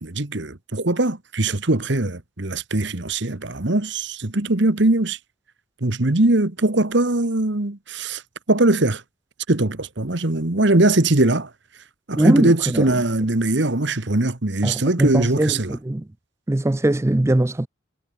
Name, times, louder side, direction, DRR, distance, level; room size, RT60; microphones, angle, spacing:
voice 1, 0.0-5.2 5.8-8.2 8.5-9.0 9.5-11.5 12.1-15.7, right 2 dB, 55° right, 1.5 m, -21 dB
voice 2, 12.2-12.8 14.6-16.1 16.5-17.7, right 1 dB, 15° right, 0.4 m, -20 dB
head